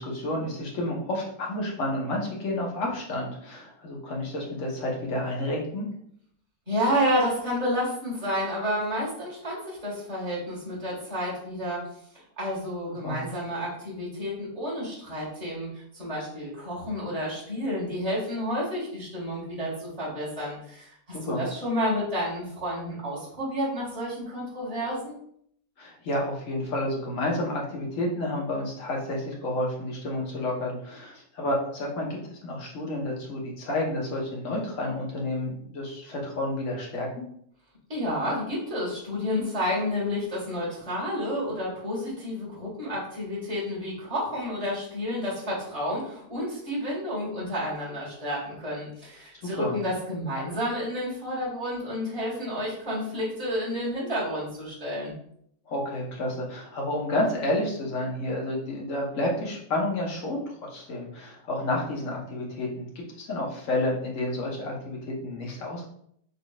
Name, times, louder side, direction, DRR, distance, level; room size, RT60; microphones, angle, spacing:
voice 1, 0.0-5.9 13.0-13.2 21.1-21.4 25.8-37.2 49.4-49.8 55.7-65.9, left 1 dB, 55° left, -2 dB, 1.3 m, -30 dB
voice 2, 6.7-11.8 12.4-15.7 15.9-25.2 37.9-55.1, equal, 25° right, -6 dB, 1.6 m, -30 dB
3.9 x 3.5 x 2.3 m, 0.68 s
omnidirectional pair, 1.7 m